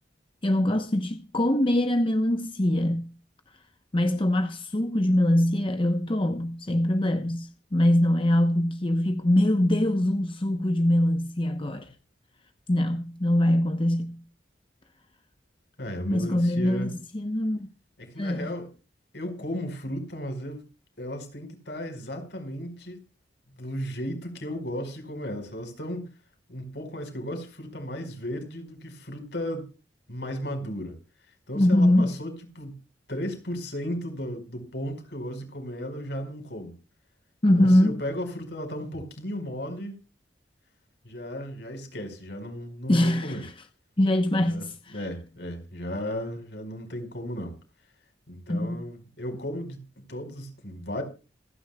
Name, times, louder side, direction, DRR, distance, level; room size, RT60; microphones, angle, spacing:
voice 1, 0.4-3.1 3.9-11.9 12.7-14.2 16.1-17.7 18.2-18.5 31.5-32.1 37.4-38.0 42.9-43.5 44.0-45.0 48.5-48.8, left 1 dB, 30° left, 0.9 m, -23 dB
voice 2, 15.8-16.9 18.0-18.7 19.1-20.6 21.0-23.0 23.6-26.1 26.5-29.7 30.1-31.0 31.5-32.8 33.1-36.7 37.6-39.9 41.0-43.4 44.5-44.6 44.9-47.5 48.3-51.0, equal, 65° left, 5.1 m, -35 dB
27.0 x 10.0 x 2.3 m
head